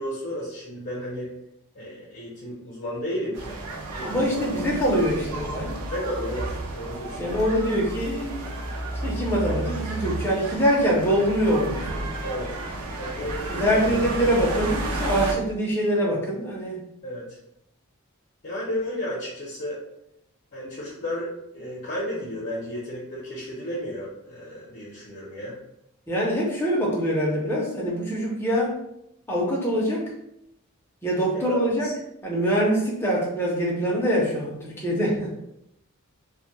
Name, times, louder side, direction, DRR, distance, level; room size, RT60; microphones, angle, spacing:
voice 1, 0.0-1.3 1.7-3.6 3.9-4.5 5.9-7.3 12.2-12.6 13.0-14.0 17.0-17.4 18.4-19.8 20.5-25.6 31.3-31.9, left 1 dB, 50° left, -6 dB, 0.7 m, -33 dB
sound 1, 3.3-15.3, right 2 dB, 90° right, 0.5 m, -32 dB
voice 2, 4.0-5.8 7.2-8.4 9.0-12.1 13.5-16.8 26.1-28.8 29.3-30.0 31.0-31.9 32.2-35.4, equal, 10° left, -4 dB, 0.5 m, -24 dB
2.2 x 2.1 x 2.9 m, 0.80 s
head